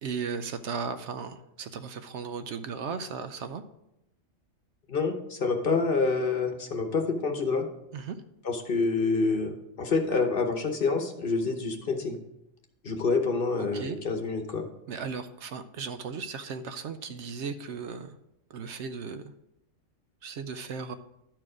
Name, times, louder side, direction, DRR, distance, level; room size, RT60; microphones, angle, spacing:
voice 1, 0.0-3.6 7.9-8.2 13.6-14.0 14.9-18.2 18.5-19.3 20.2-21.0, right 5 dB, 70° right, 9 dB, 0.8 m, -36 dB
voice 2, 4.9-7.7 8.4-12.2 12.8-14.7, left 4 dB, 50° left, 5 dB, 1.0 m, -27 dB
11.5 x 4.6 x 4.9 m, 0.85 s
omnidirectional pair, 1.4 m